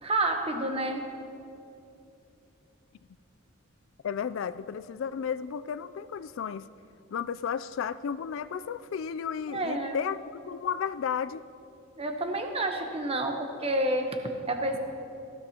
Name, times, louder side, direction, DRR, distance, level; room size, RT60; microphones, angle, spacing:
voice 1, 0.0-1.1 9.5-10.0 12.0-14.8, right 1 dB, 30° right, 5 dB, 1.0 m, -29 dB
voice 2, 4.0-6.7 7.1-11.4, left 7 dB, 70° left, 14 dB, 0.3 m, -33 dB
18.5 x 13.5 x 2.9 m, 2.7 s
head